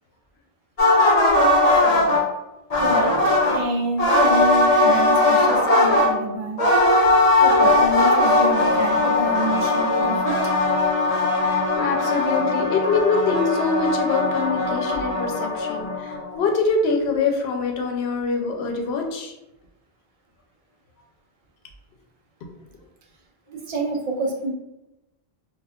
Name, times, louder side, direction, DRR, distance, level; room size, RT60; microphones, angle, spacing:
sound 1, 0.8-2.2 2.7-3.6 4.0-6.1 6.6-16.3, left 2 dB, 45° left, 0.6 m, -19 dB
voice 1, 2.8-3.2 3.5-6.6 7.4-10.3 23.5-24.5, right 2 dB, 45° right, 0 dB, 0.5 m, -27 dB
voice 2, 11.4-19.3, left 4 dB, 80° left, 3 dB, 0.8 m, -24 dB
2.5 x 2.3 x 3.4 m, 0.94 s
omnidirectional pair, 1.0 m